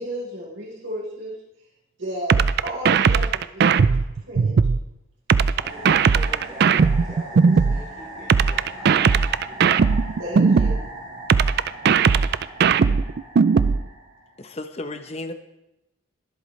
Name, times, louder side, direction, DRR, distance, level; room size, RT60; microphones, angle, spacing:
voice 1, 0.0-1.3 2.0-3.7 4.2-4.5 10.2-10.8, equal, 70° right, -3 dB, 4.1 m, -33 dB
sound 1, 2.3-4.8 5.3-7.8 8.3-10.8 11.3-13.8, right 5 dB, 50° right, 0.3 m, -17 dB
voice 2, 5.6-9.6, right 1 dB, 20° right, -10 dB, 2.5 m, -42 dB
sound 2, 5.6-14.5, right 1 dB, 85° right, 4.8 m, -39 dB
voice 3, 14.4-15.3, left 2 dB, 30° left, 8 dB, 0.8 m, -33 dB
22.0 x 8.1 x 3.2 m, 0.88 s
head